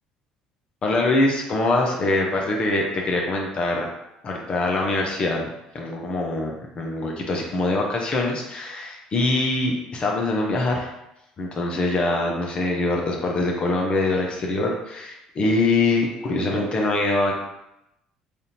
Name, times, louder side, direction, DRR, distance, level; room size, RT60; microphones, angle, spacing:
voice 1, 0.8-3.9 4.2-10.9 11.4-17.4, left 2 dB, 40° left, 0 dB, 0.8 m, -23 dB
3.4 x 2.6 x 4.3 m, 0.88 s
supercardioid pair, 75°, 3 cm